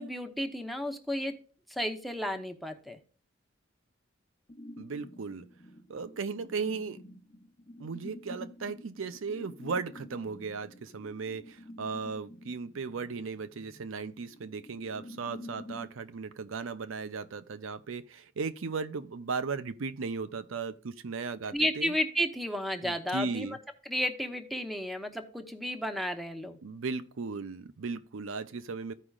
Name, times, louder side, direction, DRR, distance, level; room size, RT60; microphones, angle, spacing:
voice 1, 0.0-1.3 1.7-3.0 21.5-23.6 23.9-26.6, equal, ahead, 0.8 m, -32 dB
sound 1, 4.5-15.9, left 1 dB, 35° left, 0.9 m, -49 dB
voice 2, 4.8-5.5 5.9-7.0 7.8-21.9 22.8-23.6 26.6-28.9, right 4 dB, 80° right, 0.6 m, -36 dB
14.5 x 4.9 x 2.4 m
head